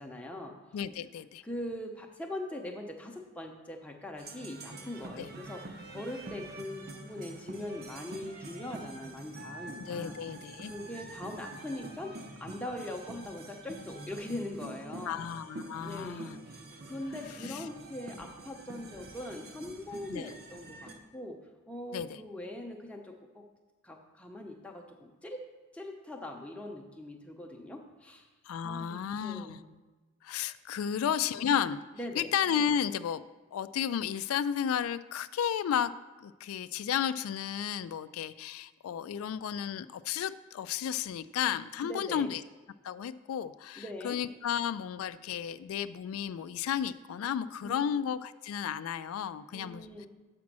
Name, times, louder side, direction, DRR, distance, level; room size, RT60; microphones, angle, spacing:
voice 1, 0.0-0.5 1.4-5.6 5.9-10.1 10.6-12.1 12.4-15.2 15.8-16.6 16.9-21.4 21.7-23.4 23.8-25.4 25.7-28.3 28.6-29.6 31.9-32.3 41.8-42.3 43.8-44.2 47.6-47.9 49.5-50.1, left 1 dB, 5° left, 1 dB, 0.7 m, -41 dB
voice 2, 0.7-1.4 5.2-5.3 9.9-10.7 15.1-16.4 17.4-17.6 20.1-20.3 21.9-22.2 28.5-29.6 30.2-31.8 32.1-33.2 33.5-35.9 36.2-42.4 42.8-50.1, left 8 dB, 85° left, 15 dB, 0.3 m, -33 dB
sound 1, 4.2-21.0, right 2 dB, 50° right, 0.8 m, -46 dB
7.3 x 5.1 x 6.0 m, 1.2 s
head